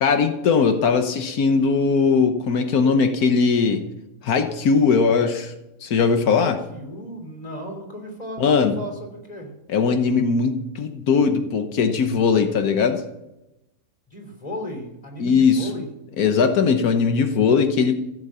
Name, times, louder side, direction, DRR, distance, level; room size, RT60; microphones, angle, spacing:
voice 1, 0.0-3.8 4.2-5.5 5.8-6.6 8.4-8.8 9.7-13.0 15.2-15.7 16.2-18.0, left 5 dB, 90° left, 7 dB, 1.5 m, -19 dB
voice 2, 6.2-9.5 14.1-15.9, equal, 25° left, 3 dB, 3.3 m, -35 dB
15.5 x 8.6 x 7.2 m, 0.93 s
omnidirectional pair, 1.5 m